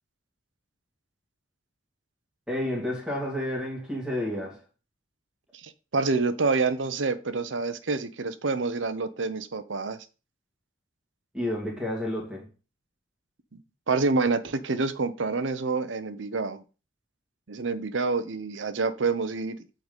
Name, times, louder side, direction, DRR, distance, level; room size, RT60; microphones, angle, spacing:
voice 1, 2.5-4.6 11.3-12.5, left 1 dB, 5° right, 2.3 m, -30 dB
voice 2, 5.6-10.0 13.9-16.6 17.5-19.6, right 4 dB, 80° right, 0.8 m, -27 dB
8.0 x 4.0 x 5.2 m
head